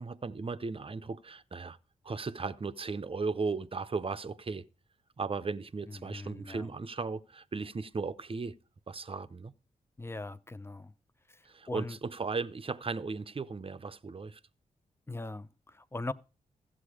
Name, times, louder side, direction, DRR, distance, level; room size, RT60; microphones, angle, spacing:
voice 1, 0.0-1.8 2.0-4.7 5.2-8.6 8.9-9.5 11.4-14.4, right 4 dB, 35° right, 0.7 m, -36 dB
voice 2, 5.9-6.7 10.0-10.9 11.3-12.0 15.1-16.1, left 2 dB, 15° left, 0.7 m, -40 dB
14.0 x 7.7 x 4.9 m
cardioid pair, 45°, 15 cm